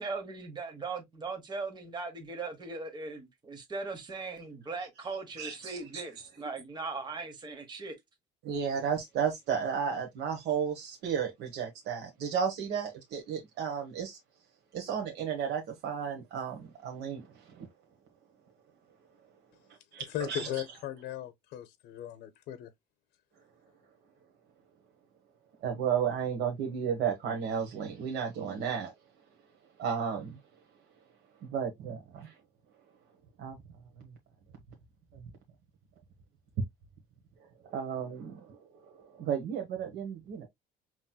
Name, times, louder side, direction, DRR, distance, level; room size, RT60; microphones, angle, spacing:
voice 1, 0.0-8.0, right 3 dB, 25° right, 1.1 m, -39 dB
voice 2, 5.4-6.0 8.4-14.2 14.7-17.7 19.9-20.5 25.6-28.9 29.8-30.4 31.4-32.3 33.4-33.6 37.7-38.6 39.2-40.5, right 7 dB, 80° right, 1.1 m, -33 dB
voice 3, 20.1-22.7, left 11 dB, 75° left, 0.6 m, -37 dB
5.8 x 3.0 x 2.2 m
cardioid pair, 110°, 17 cm